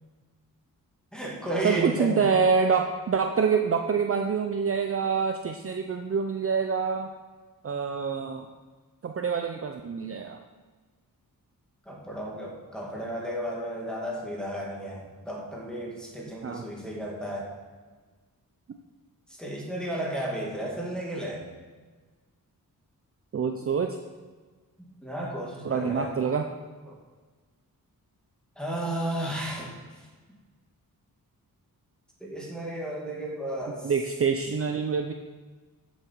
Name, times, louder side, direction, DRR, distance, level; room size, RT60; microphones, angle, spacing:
voice 1, 1.1-2.3 11.9-17.5 19.4-21.5 24.8-26.3 26.9-27.0 28.6-29.7 32.2-33.9, right 1 dB, ahead, -3 dB, 2.3 m, -33 dB
voice 2, 1.6-7.1 7.6-8.5 9.0-10.4 16.4-16.6 23.3-24.0 25.6-26.4 33.8-35.1, right 6 dB, 40° right, 4 dB, 0.6 m, -26 dB
13.5 x 7.4 x 4.6 m, 1.4 s
wide cardioid pair, 165°, 36 cm